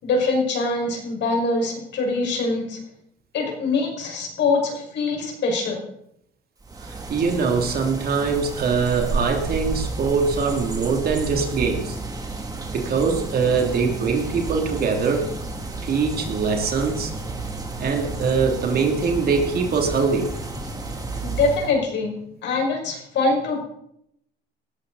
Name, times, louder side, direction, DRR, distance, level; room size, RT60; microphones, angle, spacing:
voice 1, 0.0-2.8 3.3-5.8 21.2-22.1 22.4-23.6, left 3 dB, 55° left, 1 dB, 5.8 m, -23 dB
sound 1, 6.6-21.7, right 3 dB, 15° right, 2.7 m, -31 dB
voice 2, 6.8-12.0 12.7-15.3 15.8-17.1 17.8-20.3, right 5 dB, 45° right, 3 dB, 3.1 m, -23 dB
18.5 x 14.0 x 4.2 m, 0.76 s
cardioid pair, 110°, 21 cm